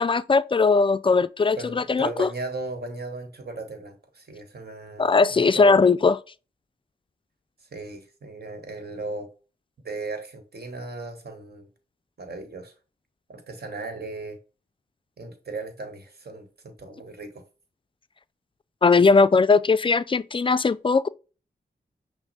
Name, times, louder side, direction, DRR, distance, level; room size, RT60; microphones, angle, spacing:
voice 1, 0.0-2.3 5.0-6.2 18.8-21.1, left 4 dB, 25° left, 0.3 m, -19 dB
voice 2, 1.6-5.8 7.6-9.3 9.8-11.7 12.2-12.7 13.3-14.4 15.2-17.4, right 3 dB, 55° right, 1.3 m, -37 dB
5.8 x 2.1 x 4.1 m
cardioid pair, 40°, 19 cm